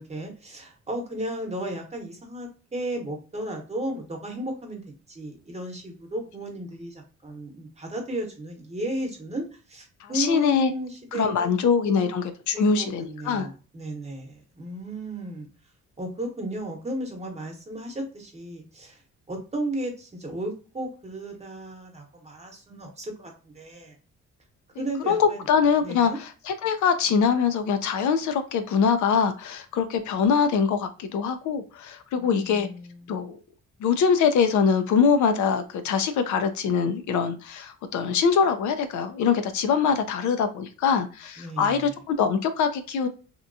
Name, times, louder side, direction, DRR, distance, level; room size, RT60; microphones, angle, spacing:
voice 1, 0.0-4.8 5.1-11.5 11.8-12.1 12.5-15.5 16.0-19.0 19.3-24.0 24.8-25.4 25.8-26.2 32.1-33.1 41.4-41.9, right 1 dB, 20° right, 2 dB, 0.9 m, -34 dB
voice 2, 10.0-10.7 11.1-13.5 25.1-32.7 33.1-33.4 33.8-43.1, left 6 dB, 75° left, 8 dB, 0.5 m, -23 dB
2.8 x 2.2 x 2.6 m, 0.36 s
cardioid pair, 90°, 30 cm